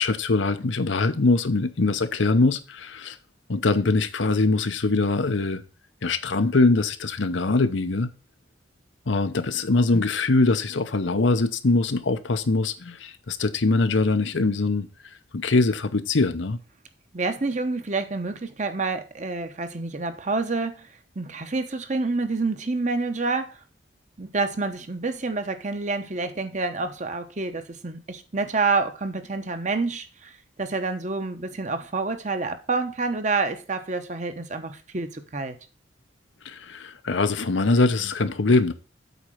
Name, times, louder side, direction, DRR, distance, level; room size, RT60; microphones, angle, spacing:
voice 1, 0.0-3.2 3.5-5.6 6.0-8.1 9.1-14.9 15.3-16.6 36.4-38.7, left 3 dB, 80° left, 0.8 m, -22 dB
voice 2, 17.1-20.9 21.2-23.6 24.2-30.3 30.6-35.6, right 3 dB, 40° right, 0.9 m, -28 dB
8.1 x 4.3 x 6.3 m
head